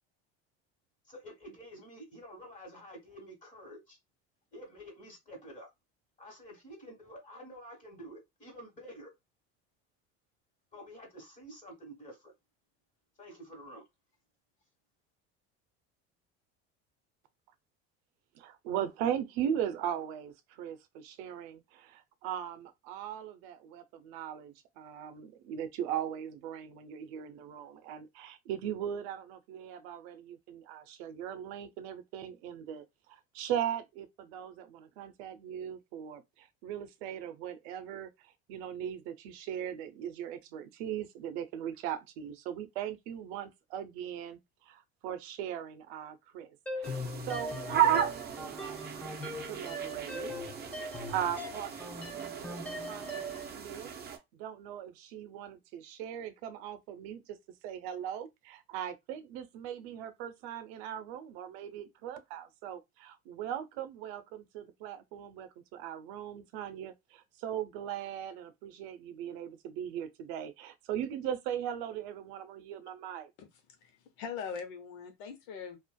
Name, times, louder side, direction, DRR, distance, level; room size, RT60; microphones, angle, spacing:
voice 1, 1.0-4.0 4.5-5.7 6.2-9.1 10.7-12.3 13.2-13.8, equal, 25° left, 1.5 m, -49 dB
voice 2, 18.3-50.3 51.1-57.4 57.6-73.3, right 9 dB, 80° right, 0.6 m, -39 dB
sound 1, 46.7-53.5, equal, 5° left, 0.7 m, -40 dB
sound 2, 46.8-54.2, right 9 dB, 30° right, 0.6 m, -34 dB
voice 3, 73.8-75.8, left 6 dB, 80° left, 0.8 m, -41 dB
2.5 x 2.4 x 2.2 m
supercardioid pair, 95°, 31 cm